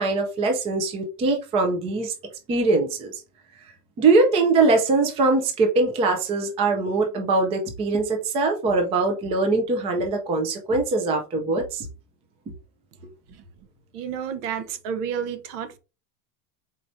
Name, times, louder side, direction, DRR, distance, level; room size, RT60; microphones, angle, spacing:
voice 1, 0.0-2.1 2.5-3.2 4.0-11.9, right 3 dB, 15° right, 0.4 m, -22 dB
voice 2, 13.9-15.8, right 7 dB, 70° right, 1.0 m, -31 dB
4.6 x 4.3 x 2.6 m
supercardioid pair, 155°, 48 cm